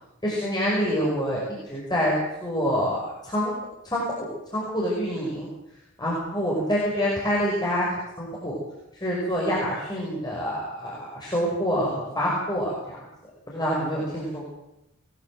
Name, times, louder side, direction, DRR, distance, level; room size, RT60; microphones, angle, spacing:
voice 1, 0.2-2.1 2.4-3.5 3.8-4.0 4.5-5.5 6.0-7.9 8.2-8.6 9.0-11.9 12.2-13.0 13.5-14.5, equal, 20° left, -4 dB, 5.7 m, -26 dB
21.0 x 19.5 x 7.9 m, 0.87 s
head